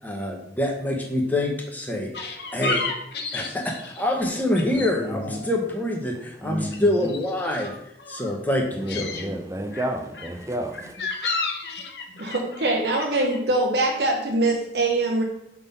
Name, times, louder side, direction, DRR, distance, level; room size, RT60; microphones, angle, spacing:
voice 1, 0.0-2.1 2.5-2.9 3.3-7.7 8.1-9.3, left 1 dB, 10° left, 1.0 m, -26 dB
sound 1, 2.1-4.9 5.2-6.1 6.3-8.4 8.7-9.2 9.7-13.4, left 3 dB, 70° left, 0.8 m, -33 dB
voice 2, 4.7-5.5 6.4-7.1 8.7-11.0, right 1 dB, 15° right, 0.6 m, -31 dB
voice 3, 12.2-15.2, right 2 dB, 70° right, 0.9 m, -23 dB
5.9 x 3.7 x 5.5 m
head